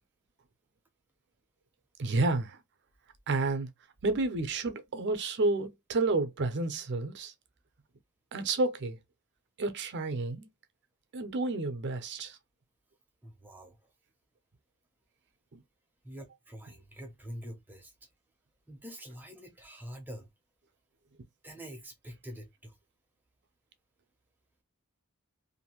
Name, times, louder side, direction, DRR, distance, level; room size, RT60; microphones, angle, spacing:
voice 1, 2.0-2.6 3.3-3.7 4.0-7.3 8.3-9.0 9.6-10.5 11.1-12.4 15.5-15.6, right 3 dB, 50° right, 0.6 m, -30 dB
voice 2, 13.2-13.8 16.0-17.9 18.7-20.3 21.4-22.8, equal, 10° right, 0.6 m, -45 dB
2.6 x 2.5 x 2.9 m
head